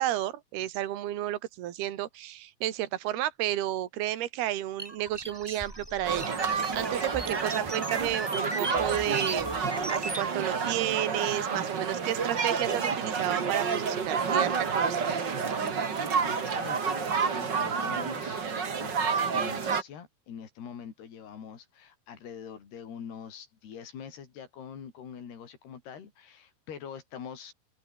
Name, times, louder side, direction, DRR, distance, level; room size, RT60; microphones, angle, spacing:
voice 1, 0.0-9.6 9.9-14.5 14.8-15.0, right 13 dB, 60° right, 3.6 m, -32 dB
sound 1, 4.8-10.3, right 1 dB, 5° right, 2.3 m, -36 dB
sound 2, 6.0-19.8, right 5 dB, 40° right, 1.6 m, -29 dB
voice 2, 16.2-27.5, left 7 dB, 55° left, 5.8 m, -44 dB
open air
omnidirectional pair, 5.6 m